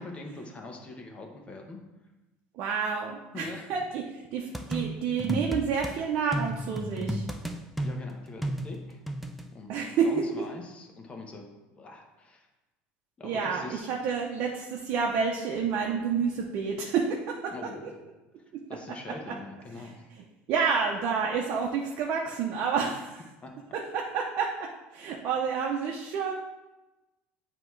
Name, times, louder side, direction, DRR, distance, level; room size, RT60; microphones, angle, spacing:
voice 1, 0.0-1.8 3.3-3.7 7.8-9.0 9.5-12.5 13.2-13.9 17.5-17.9 18.7-20.1 22.8-22.9 23.4-23.5, left 2 dB, 25° left, 2 dB, 1.1 m, -43 dB
voice 2, 2.5-7.2 9.7-10.1 10.4-10.5 13.2-17.5 17.8-17.9 19.3-19.4 19.8-19.9 20.5-22.9 23.7-26.3, right 6 dB, 55° right, 0 dB, 0.8 m, -29 dB
sound 1, 4.5-6.0 6.3-9.5, right 1 dB, ahead, 0.5 m, -33 dB
7.8 x 3.0 x 4.6 m, 1.0 s
supercardioid pair, 110°, 5 cm